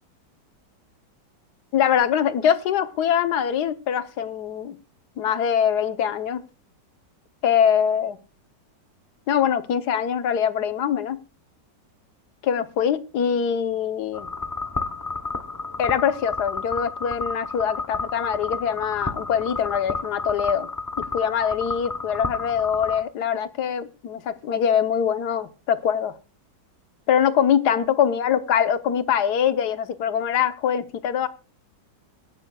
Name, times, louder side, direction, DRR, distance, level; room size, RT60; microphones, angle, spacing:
voice 1, 1.7-4.7 5.2-6.4 7.4-8.2 9.3-11.2 12.4-14.3 15.8-20.7 21.0-26.1 27.1-31.3, left 8 dB, 65° left, 1.4 m, -23 dB
sound 1, 14.1-23.0, left 4 dB, 25° left, 0.4 m, -31 dB
24.0 x 11.5 x 2.3 m
omnidirectional pair, 1.9 m